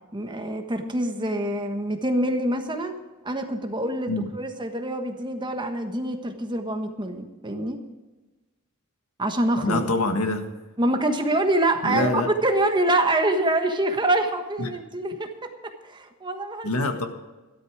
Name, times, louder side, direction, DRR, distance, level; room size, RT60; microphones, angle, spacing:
voice 1, 0.1-3.0 3.2-7.8 9.2-10.1 10.8-16.7, right 1 dB, 20° right, 6 dB, 1.3 m, -25 dB
voice 2, 9.6-10.4 11.8-12.3 14.6-14.8 16.6-17.1, left 2 dB, 85° left, 6 dB, 1.6 m, -25 dB
13.5 x 12.0 x 4.9 m, 1.2 s
head